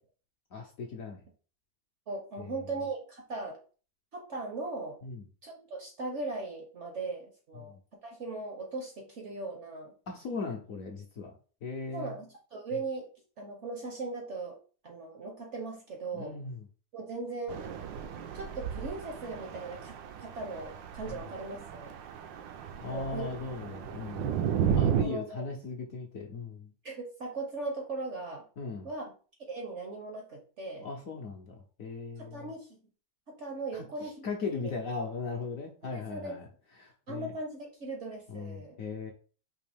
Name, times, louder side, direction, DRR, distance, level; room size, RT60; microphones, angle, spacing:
voice 1, 0.5-1.2 2.4-2.5 5.0-5.2 7.6-7.8 10.1-11.3 11.6-12.1 16.1-16.6 21.0-21.2 22.8-24.3 24.7-26.7 28.6-28.9 30.8-32.5 33.7-36.5 36.8-37.3 38.3-39.1, left 4 dB, 60° left, 1 dB, 0.9 m, -38 dB
voice 2, 2.1-3.6 4.1-5.0 5.4-7.8 8.0-9.9 11.9-13.1 13.4-14.6 14.8-16.3 16.9-17.9 18.3-22.0 22.8-23.3 25.0-25.4 26.8-28.5 28.8-29.0 29.5-30.9 32.2-32.8 33.3-34.2 35.8-36.3 37.1-38.7, right 3 dB, 55° right, 1 dB, 0.8 m, -38 dB
sound 1, 17.5-25.0, right 8 dB, 75° right, 1.3 m, -34 dB
5.2 x 2.8 x 3.4 m, 0.39 s
omnidirectional pair, 2.1 m